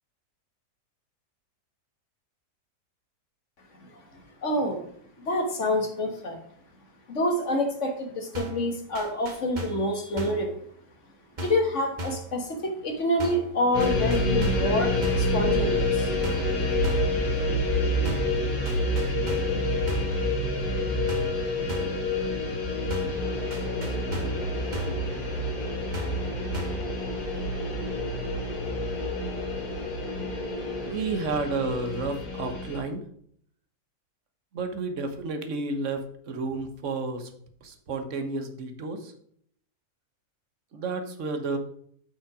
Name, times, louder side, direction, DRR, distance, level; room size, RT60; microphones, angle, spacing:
voice 1, 3.8-4.8 5.2-6.4 7.1-10.6 11.4-16.1, left 1 dB, 50° left, 4 dB, 1.8 m, -27 dB
sound 1, 8.3-8.7 8.9-9.9 10.2-10.5 11.4-11.7 12.0-12.3 13.2-13.5 13.8-14.7 15.0-15.3 16.2-16.5 16.8-17.2 18.0-18.4 18.6-19.6 19.9-20.2 21.1-21.4 21.7-22.0 22.9-23.2 23.5-24.4 24.7-25.0 25.9-26.3 26.5-26.9, right 1 dB, 30° right, 1.2 m, -36 dB
sound 2, 13.7-32.8, left 2 dB, 75° left, 3.0 m, -28 dB
sound 3, 23.1-30.9, left 1 dB, 30° left, 4.2 m, -39 dB
voice 2, 30.9-33.0 34.5-37.3 37.6-39.1 40.7-41.6, right 3 dB, 50° right, 7 dB, 1.4 m, -31 dB
9.1 x 5.5 x 4.8 m, 0.65 s
omnidirectional pair, 1.7 m